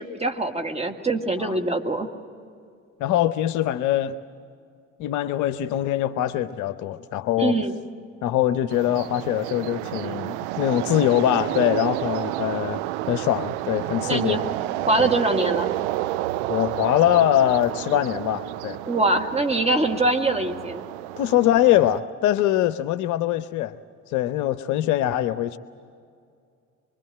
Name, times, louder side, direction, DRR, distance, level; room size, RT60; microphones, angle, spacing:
voice 1, 0.0-2.1 7.4-7.8 14.0-14.5 14.8-15.7 18.9-20.8, right 2 dB, 15° right, 5 dB, 2.0 m, -23 dB
voice 2, 3.0-4.2 5.0-7.6 8.2-12.8 13.1-14.4 15.0-15.1 16.5-18.8 21.2-23.7 24.1-25.6, left 12 dB, 45° left, 14 dB, 0.8 m, -23 dB
sound 1, 8.7-22.0, right 16 dB, 60° right, 0.6 m, -30 dB
24.5 x 24.0 x 7.7 m, 2.3 s
figure-of-eight pair, 60°, 40 cm